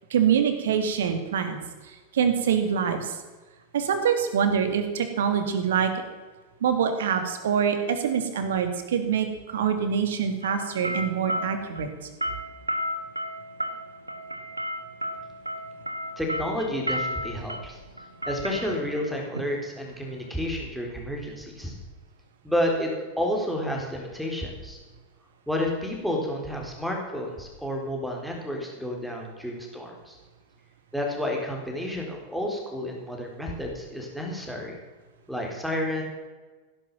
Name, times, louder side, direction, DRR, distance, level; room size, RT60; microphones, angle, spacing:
voice 1, 0.1-1.6 1.9-3.2 3.7-5.9 6.6-11.9, right 7 dB, 60° right, 8 dB, 2.3 m, -25 dB
sound 1, 10.4-20.3, equal, 85° right, 1.3 m, -34 dB
voice 2, 16.2-17.8 18.3-21.7 22.4-22.9 23.2-24.8 25.5-30.2 30.9-34.8 35.3-36.0, left 1 dB, ahead, 0 dB, 4.2 m, -30 dB
16.5 x 11.0 x 7.3 m, 1.3 s
figure-of-eight pair, 90°, 0 cm